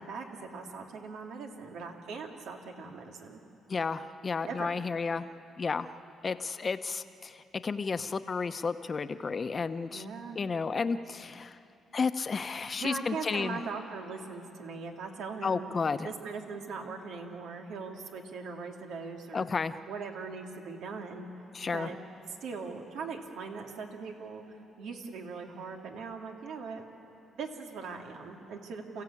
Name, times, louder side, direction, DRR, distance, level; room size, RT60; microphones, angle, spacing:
voice 1, 0.0-3.4 4.4-4.7 9.9-10.4 12.8-15.7 16.0-19.5 19.9-21.3 21.6-22.0 22.4-26.9 27.3-29.0, right 4 dB, 80° right, 2 dB, 2.6 m, -40 dB
voice 2, 3.7-5.3 5.6-5.9 6.2-10.0 10.3-11.6 11.9-13.6 15.4-16.1 19.3-19.7 21.5-21.9, left 4 dB, 35° left, 10 dB, 0.9 m, -32 dB
28.5 x 15.5 x 8.6 m, 2.8 s
cardioid pair, 90°, 0 cm